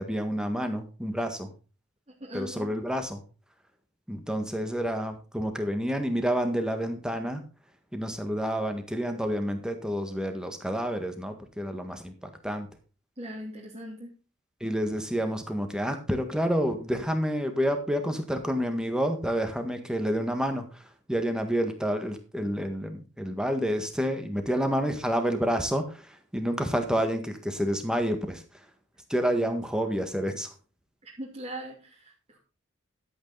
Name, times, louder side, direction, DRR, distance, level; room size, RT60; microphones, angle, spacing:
voice 1, 0.0-1.5 2.3-3.2 4.1-7.4 7.9-12.7 14.6-28.7 29.1-30.5, equal, 5° right, 6 dB, 1.6 m, -29 dB
voice 2, 2.2-2.7 13.2-14.2 31.0-32.4, right 1 dB, 30° right, -4 dB, 2.7 m, -40 dB
12.5 x 8.5 x 4.1 m, 0.35 s
head